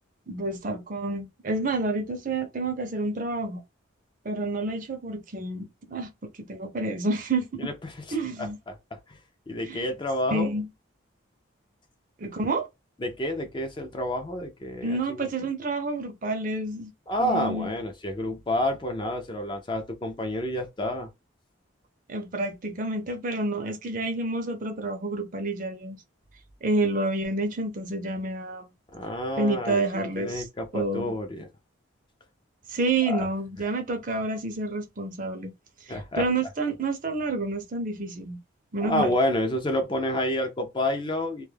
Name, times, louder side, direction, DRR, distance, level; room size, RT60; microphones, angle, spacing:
voice 1, 0.3-3.6 4.2-7.7 8.1-8.6 9.6-9.9 10.3-10.7 12.2-12.7 14.8-16.9 17.2-17.7 22.1-26.0 26.6-28.7 29.4-30.5 30.7-31.1 32.7-35.5 35.8-38.4 38.7-39.1, right 2 dB, 40° right, 0.5 m, -29 dB
voice 2, 7.6-7.9 8.7-8.8 9.1-9.2 9.5-10.5 13.0-15.3 17.1-21.1 28.9-31.5 33.1-33.3 35.9-36.2 38.8-41.4, left 1 dB, 25° left, 0.4 m, -29 dB
2.2 x 2.1 x 3.2 m
head